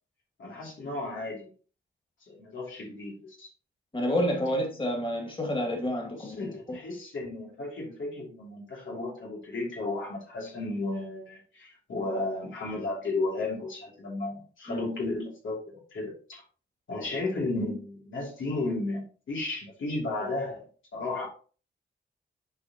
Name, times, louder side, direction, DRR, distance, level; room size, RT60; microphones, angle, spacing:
voice 1, 0.4-1.5 2.2-3.5 6.2-16.4 16.9-20.7 20.9-21.3, left 2 dB, 85° left, 2.9 m, -34 dB
voice 2, 3.9-6.8 14.7-14.8, equal, 25° left, 2.4 m, -29 dB
11.0 x 4.2 x 3.0 m
wide cardioid pair, 95°, 20 cm